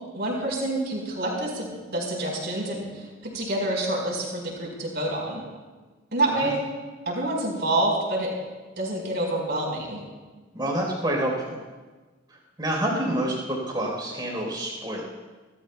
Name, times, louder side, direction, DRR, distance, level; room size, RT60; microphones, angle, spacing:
voice 1, 0.1-3.1 3.3-5.4 6.1-6.6 7.0-8.3 8.8-10.0, right 1 dB, 55° right, -2 dB, 4.7 m, -27 dB
voice 2, 10.5-11.6 12.3-15.0, right 1 dB, 20° right, -2 dB, 4.2 m, -28 dB
28.5 x 13.0 x 2.3 m, 1.3 s
head